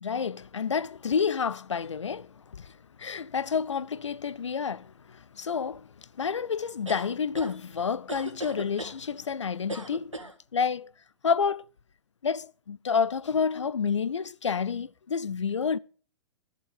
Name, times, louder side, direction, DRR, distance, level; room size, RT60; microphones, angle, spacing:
voice 1, 0.0-10.2 10.5-10.9 11.2-11.6 12.2-15.8, left 6 dB, 70° left, 0.4 m, -29 dB
sound 1, 6.9-7.5 8.1-9.0 9.7-10.3, right 2 dB, 85° right, 1.6 m, -37 dB
11.5 x 7.0 x 6.9 m
figure-of-eight pair, 110°, 16 cm